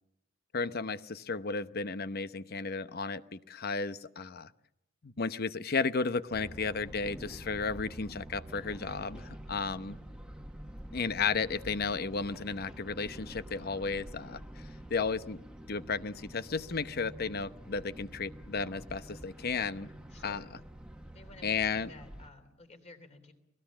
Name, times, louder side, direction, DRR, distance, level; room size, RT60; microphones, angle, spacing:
voice 1, 0.5-4.5 5.0-10.0 10.9-14.6 14.9-15.4 15.7-19.9 20.2-20.5 21.4-21.9, left 4 dB, 55° left, 13 dB, 0.8 m, -33 dB
sound 1, 6.3-22.3, right 1 dB, 5° right, 1.4 m, -48 dB
voice 2, 9.6-9.9 20.1-20.6 21.1-23.3, left 2 dB, 35° left, 7 dB, 3.2 m, -54 dB
29.5 x 19.0 x 7.3 m, 0.82 s
head